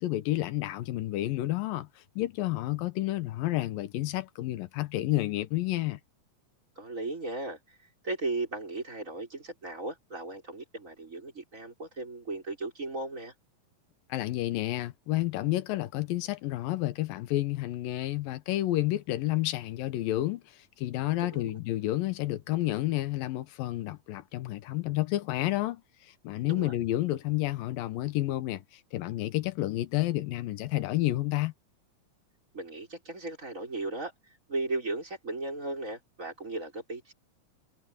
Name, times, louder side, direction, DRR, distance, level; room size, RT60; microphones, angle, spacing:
voice 1, 0.0-1.9 2.2-6.0 14.1-20.4 20.8-31.5, left 16 dB, 90° left, 2.8 m, -30 dB
voice 2, 6.8-7.8 8.0-13.3 21.2-21.6 26.5-26.7 32.5-34.1 34.5-37.1, right 2 dB, 20° right, 6.0 m, -36 dB
omnidirectional pair, 3.9 m